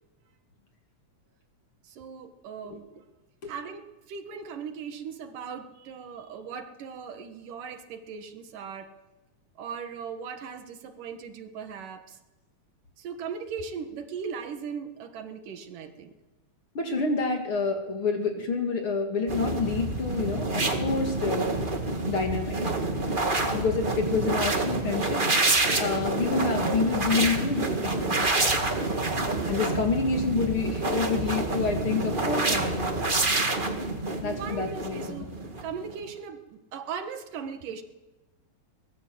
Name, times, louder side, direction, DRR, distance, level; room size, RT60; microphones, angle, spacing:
voice 1, 1.8-3.0 3.5-8.9 9.6-12.2 13.0-16.1 34.2-35.3 35.6-37.8, right 6 dB, 80° right, 7 dB, 3.2 m, -38 dB
voice 2, 16.7-21.6 22.1-22.6 23.5-28.3 29.5-33.0 34.2-35.3, left 4 dB, 45° left, 4 dB, 2.9 m, -28 dB
sound 1, 19.3-35.9, right 2 dB, 20° right, 1.4 m, -27 dB
24.0 x 20.0 x 7.8 m, 1.1 s
omnidirectional pair, 3.7 m